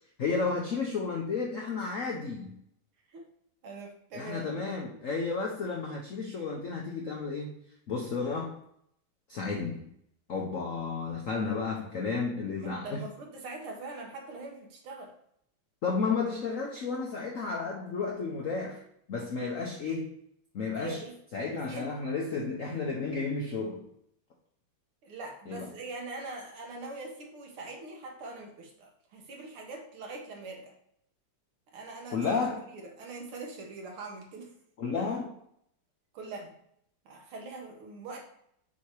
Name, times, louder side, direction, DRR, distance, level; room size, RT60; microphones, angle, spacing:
voice 1, 0.2-2.5 4.1-7.6 7.9-8.6 9.3-9.9 10.3-13.0 15.8-18.8 19.1-20.1 20.5-21.0 21.3-23.8 25.5-25.7 32.1-32.6 34.8-35.3, left 4 dB, 70° left, 0 dB, 0.7 m, -32 dB
voice 2, 3.6-4.6 4.9-5.0 6.4-6.5 12.6-15.1 20.8-21.2 21.5-21.9 25.0-30.7 31.7-34.5 34.9-35.0 36.1-36.5 37.1-38.2, right 3 dB, 75° right, 1 dB, 2.1 m, -42 dB
7.0 x 2.9 x 4.7 m, 0.71 s
omnidirectional pair, 2.4 m